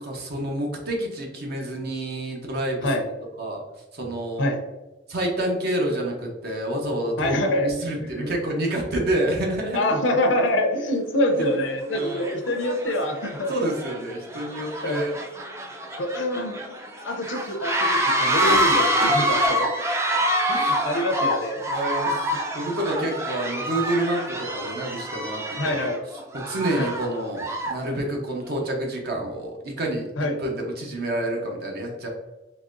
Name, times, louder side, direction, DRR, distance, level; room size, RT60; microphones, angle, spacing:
voice 1, 0.0-2.9 3.4-3.6 3.9-4.5 5.1-9.9 11.4-11.5 11.9-12.3 13.5-15.2 18.5-19.6 20.5-20.8 21.7-22.2 22.5-25.9 26.5-32.1, right 1 dB, 55° right, 0 dB, 0.8 m, -28 dB
voice 2, 7.2-7.7 8.2-8.3 9.7-13.5 14.8-15.0 16.0-16.8 17.0-19.7 20.7-21.6 25.6-26.0 26.8-26.9 30.2-30.4, left 1 dB, 70° left, 4 dB, 0.6 m, -25 dB
sound 1, 10.5-10.6 11.3-11.5 11.9-27.9, equal, 15° right, 0.4 m, -26 dB
4.0 x 2.9 x 2.5 m, 1.1 s
head